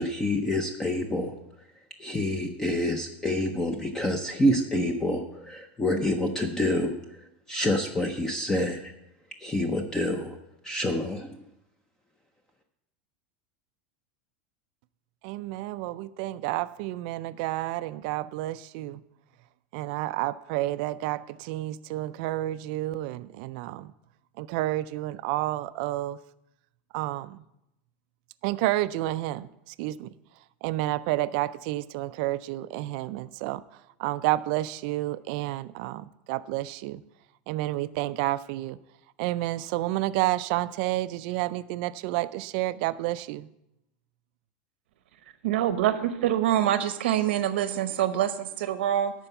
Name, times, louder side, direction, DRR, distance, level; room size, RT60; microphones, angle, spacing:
voice 1, 0.0-1.3 2.0-7.2 7.5-8.9 9.4-10.4 10.6-11.4, left 1 dB, 10° left, 0.6 m, -27 dB
voice 2, 15.2-19.0 19.7-23.9 24.4-26.2 26.9-27.4 28.4-30.1 30.6-33.6 34.0-37.0 37.5-38.8 39.2-43.5, right 16 dB, 55° right, 0.3 m, -30 dB
voice 3, 45.4-49.1, right 11 dB, 90° right, 0.9 m, -25 dB
11.0 x 4.5 x 8.0 m
supercardioid pair, 165°, 6 cm